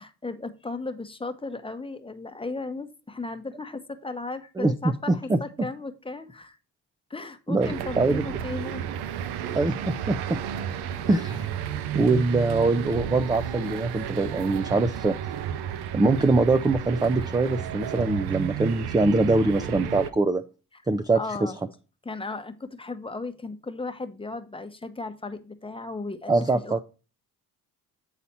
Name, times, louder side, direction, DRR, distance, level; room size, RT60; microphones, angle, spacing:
voice 1, 0.0-6.6 7.1-8.8 11.8-11.9 21.1-21.6 22.0-26.8, left 3 dB, 15° left, 8 dB, 0.9 m, -35 dB
voice 2, 4.6-5.7 7.5-8.2 9.5-10.4 11.1-11.5 11.9-15.2 15.9-20.4 20.9-21.5 26.3-26.8, right 3 dB, 10° right, 10 dB, 0.4 m, -23 dB
sound 1, 7.6-20.1, right 9 dB, 85° right, 0.7 m, -32 dB
8.5 x 4.1 x 4.2 m, 0.34 s
cardioid pair, 85°, 39 cm